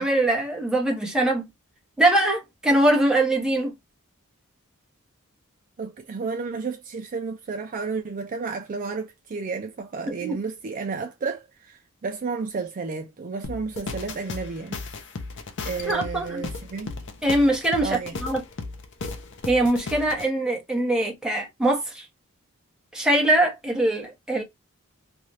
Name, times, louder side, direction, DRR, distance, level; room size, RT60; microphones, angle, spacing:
voice 1, 0.0-1.4 2.0-3.7 10.1-10.4 15.9-16.4 17.2-18.4 19.5-22.0 22.9-24.4, right 1 dB, 5° right, 0.9 m, -22 dB
voice 2, 5.8-14.8 15.6-16.9 17.8-18.1, right 4 dB, 40° right, 0.4 m, -32 dB
sound 1, 13.4-20.3, left 3 dB, 60° left, 0.6 m, -35 dB
2.6 x 2.3 x 3.1 m
head